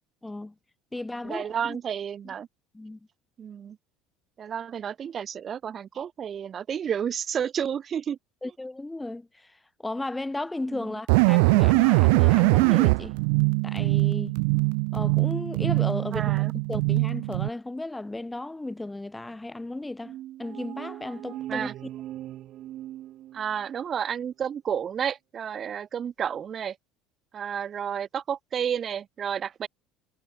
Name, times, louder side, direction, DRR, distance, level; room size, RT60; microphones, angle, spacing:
voice 1, 0.2-0.5 0.9-1.8 2.2-2.3 2.7-3.0 8.4-13.2 13.6-14.3 14.9-21.7, left 2 dB, 10° left, 3.6 m, -35 dB
voice 2, 1.2-2.5 3.4-3.8 4.4-8.2 10.7-11.0 16.1-16.5 21.5-21.7 23.3-26.8 27.3-29.7, right 8 dB, 30° right, 0.8 m, -31 dB
sound 1, 11.1-17.5, right 33 dB, 85° right, 0.5 m, -22 dB
sound 2, 20.0-23.8, right 13 dB, 45° right, 3.4 m, -40 dB
cardioid pair, 140°, 0 cm